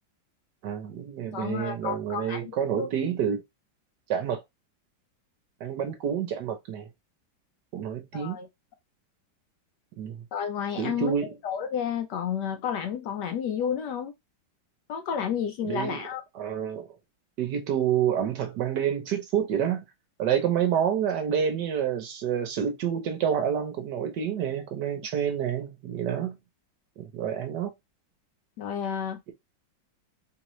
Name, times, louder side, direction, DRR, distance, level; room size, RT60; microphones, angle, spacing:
voice 1, 0.6-3.4 4.1-4.4 5.6-6.9 7.7-8.4 10.0-10.2 10.8-11.3 15.6-16.0 16.3-16.9 17.4-19.8 20.2-26.4 27.0-27.7, right 8 dB, 65° right, 1.2 m, -28 dB
voice 2, 1.3-2.5 2.8-2.9 8.1-8.5 10.3-11.2 11.4-14.1 14.9-16.2 28.6-29.2, left 8 dB, 70° left, 1.1 m, -31 dB
3.8 x 2.8 x 3.0 m
omnidirectional pair, 2.1 m